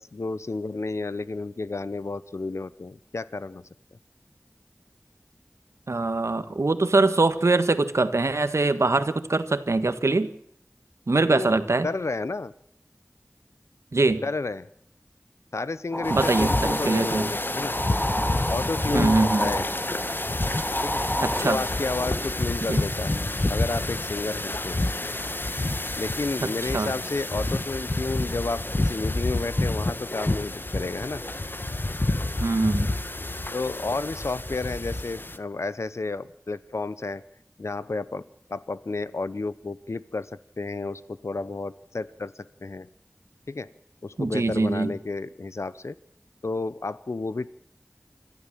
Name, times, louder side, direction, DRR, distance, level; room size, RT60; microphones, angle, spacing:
voice 1, 0.0-3.7 11.3-12.5 14.2-14.7 15.5-17.8 18.5-19.7 20.8-21.0 21.4-24.8 25.9-31.2 32.1-32.2 33.5-37.2 37.6-42.9 43.5-43.7 44.0-46.0 46.4-47.5, left 3 dB, 80° left, 16 dB, 0.7 m, -31 dB
voice 2, 5.9-10.3 11.1-11.9 13.9-14.2 16.1-17.3 18.8-19.5 21.2-21.6 22.7-22.8 26.7-26.9 32.4-32.9 44.2-44.9, right 3 dB, 90° right, 10 dB, 1.5 m, -23 dB
sound 1, 15.9-22.1, equal, 15° left, 2.8 m, -30 dB
sound 2, 16.0-35.4, left 2 dB, 45° left, 1.3 m, -29 dB
26.0 x 14.5 x 7.4 m, 0.69 s
wide cardioid pair, 45°, 5 cm